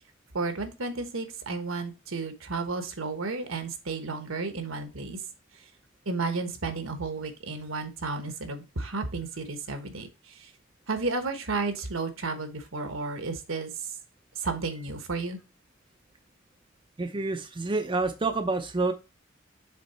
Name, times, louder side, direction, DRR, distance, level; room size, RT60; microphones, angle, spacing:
voice 1, 0.3-5.2 6.1-10.1 10.4-10.5 10.9-13.7 14.4-15.4, right 3 dB, 75° right, 8 dB, 1.3 m, -32 dB
voice 2, 17.0-18.9, right 3 dB, 25° right, 6 dB, 0.6 m, -28 dB
7.4 x 3.6 x 4.3 m, 0.27 s
head